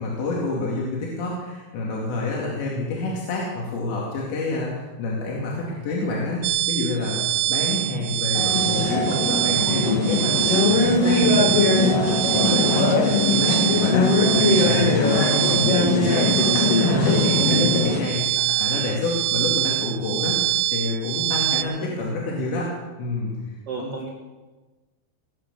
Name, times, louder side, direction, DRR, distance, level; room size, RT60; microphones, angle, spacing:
voice 1, 0.0-22.7 23.0-23.9, left 2 dB, 65° left, -3 dB, 4.5 m, -28 dB
voice 2, 5.6-6.1 12.6-12.9 18.3-18.7 21.8-22.0 23.7-24.1, right 4 dB, 50° right, -1 dB, 1.8 m, -37 dB
sound 1, 6.4-21.6, right 15 dB, 80° right, 2.9 m, -25 dB
sound 2, 8.3-18.0, left 3 dB, 50° left, 2.0 m, -20 dB
20.5 x 9.1 x 7.0 m, 1.2 s
omnidirectional pair, 5.8 m